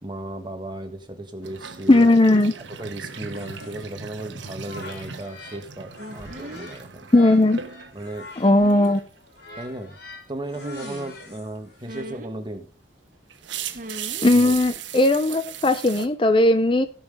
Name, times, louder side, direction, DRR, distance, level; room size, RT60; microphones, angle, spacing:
voice 1, 0.0-2.1 2.8-7.1 7.9-8.3 9.6-10.0 10.3-12.7 14.3-14.6, right 1 dB, 25° right, 6 dB, 1.5 m, -35 dB
sound 1, 1.4-8.4 8.7-9.1 12.4-12.5 13.3-16.1, right 7 dB, 80° right, 1.2 m, -38 dB
voice 2, 1.9-2.5 7.1-7.6 8.4-9.0 14.2-16.9, left 2 dB, 30° left, 11 dB, 0.6 m, -17 dB
sound 2, 3.1-5.6 5.9-12.0, left 3 dB, 55° left, 3.6 m, -45 dB
sound 3, 6.0-6.7 8.4-8.9 10.6-11.1 11.8-12.3 13.7-14.2 14.5-14.8, right 1 dB, 45° right, 1.3 m, -38 dB
17.0 x 5.8 x 5.3 m, 0.39 s
head